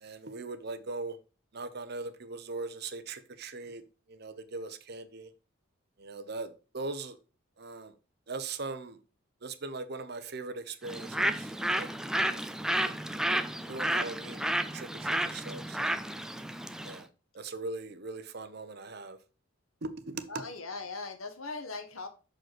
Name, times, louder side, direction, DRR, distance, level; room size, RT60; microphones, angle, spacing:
voice 1, 0.0-1.2 1.5-3.8 4.1-5.3 6.0-7.2 7.6-7.9 8.3-9.0 9.4-12.4 12.8-12.9 13.3-13.4 13.7-16.0 16.8-17.1 17.3-19.2 19.8-20.4, right 3 dB, 50° right, 0.9 m, -40 dB
Bird, 10.8-17.0, right 1 dB, 5° right, 0.4 m, -31 dB
voice 2, 20.3-22.1, left 3 dB, 90° left, 1.5 m, -39 dB
6.4 x 5.1 x 5.9 m
head